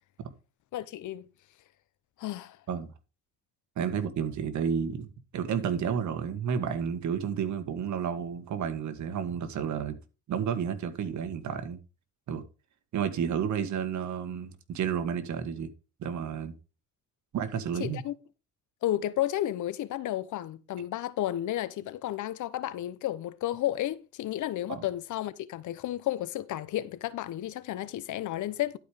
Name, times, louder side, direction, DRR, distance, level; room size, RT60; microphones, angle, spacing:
voice 1, 0.7-1.3 2.2-2.6 17.8-18.1 18.8-28.8, left 13 dB, 75° left, 0.9 m, -32 dB
voice 2, 3.8-5.1 5.3-10.0 10.3-11.8 12.3-12.4 12.9-15.7 16.0-16.5 17.3-18.0 24.7-24.8, right 7 dB, 70° right, 1.7 m, -31 dB
11.5 x 5.1 x 5.1 m
cardioid pair, 90°, 30 cm